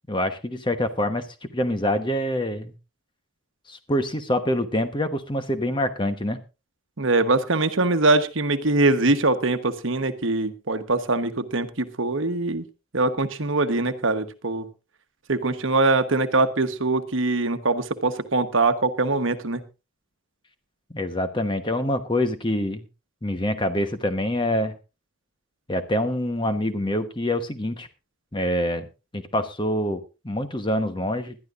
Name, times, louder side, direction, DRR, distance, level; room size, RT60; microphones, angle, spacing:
voice 1, 0.1-2.7 3.7-6.4 20.9-22.8 23.2-24.7 25.7-27.9 28.3-28.9 29.1-31.4, left 1 dB, 20° left, 8 dB, 1.1 m, -25 dB
voice 2, 7.0-12.6 12.9-14.7 15.3-19.6, right 2 dB, 65° right, 9 dB, 1.1 m, -23 dB
20.5 x 12.0 x 2.5 m, 0.29 s
head